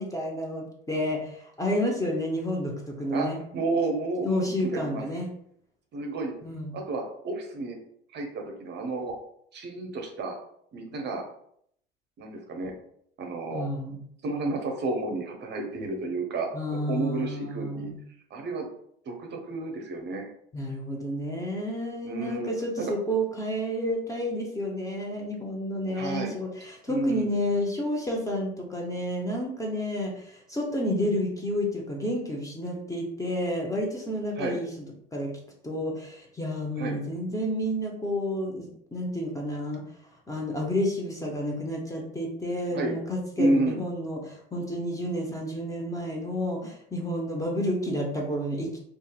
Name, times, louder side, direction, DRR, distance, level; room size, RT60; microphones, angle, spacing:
voice 1, 0.0-3.4 4.2-5.3 6.4-6.7 13.5-14.0 16.5-18.0 20.5-34.9 35.1-35.3 35.6-39.8 40.3-48.8, equal, 10° left, -1 dB, 0.6 m, -30 dB
voice 2, 3.1-5.0 5.9-6.3 6.7-7.8 8.1-9.1 9.5-10.3 10.7-11.2 12.2-12.7 13.2-13.6 14.2-17.9 18.3-18.7 19.1-20.3 22.0-22.5 22.8-22.9 25.9-26.3 26.9-27.3 34.4-34.6 36.8-37.0 42.7-42.9 43.4-43.8, right 2 dB, 35° right, 2 dB, 0.6 m, -31 dB
2.6 x 2.5 x 2.3 m, 0.68 s
hypercardioid pair, 75°, 29 cm